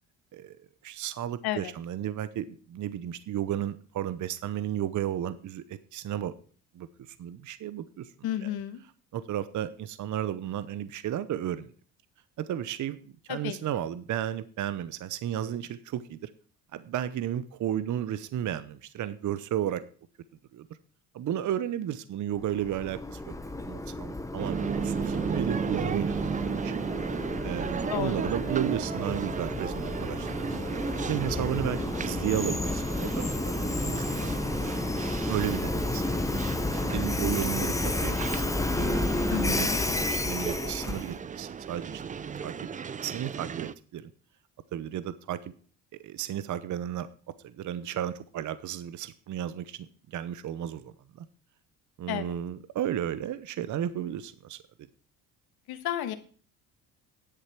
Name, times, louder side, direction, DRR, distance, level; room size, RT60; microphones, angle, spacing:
voice 1, 0.8-6.3 6.7-6.9 7.2-8.1 8.4-8.5 9.1-11.7 12.4-16.3 16.7-19.8 20.5-20.7 21.1-23.3 23.6-26.8 27.4-30.3 31.1-34.3 35.3-36.0 36.6-38.5 38.7-42.0 42.4-42.7 43.0-44.1 44.7-45.5 46.0-51.3 52.0-54.6, right 11 dB, 50° right, 15 dB, 0.8 m, -33 dB
voice 2, 8.2-8.8 13.3-13.6 27.9-28.2 39.3-39.8 52.1-52.4 55.7-56.1, left 11 dB, 70° left, 9 dB, 1.6 m, -32 dB
Train, 22.4-41.2, left 2 dB, 10° left, 0.9 m, -31 dB
sound 1, 24.4-43.7, right 6 dB, 20° right, 0.4 m, -35 dB
10.5 x 8.1 x 5.9 m, 0.43 s
cardioid pair, 95°, 38 cm